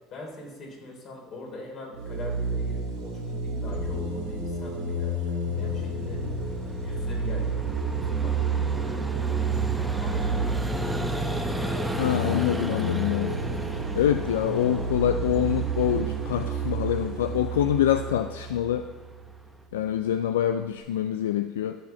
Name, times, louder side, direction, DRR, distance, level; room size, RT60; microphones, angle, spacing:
voice 1, 0.1-6.2 6.8-7.6 7.9-9.5 10.0-11.2, left 2 dB, 50° left, 0 dB, 3.3 m, -42 dB
sound 1, 1.9-19.3, right 3 dB, 80° right, 2.1 m, -30 dB
Vehicle, 4.9-19.6, right 1 dB, 10° right, 1.0 m, -36 dB
voice 2, 12.0-13.4 13.9-18.9 19.7-21.8, left 11 dB, 80° left, 9 dB, 0.3 m, -25 dB
13.5 x 4.9 x 5.7 m, 1.3 s
hypercardioid pair, 70°, 0 cm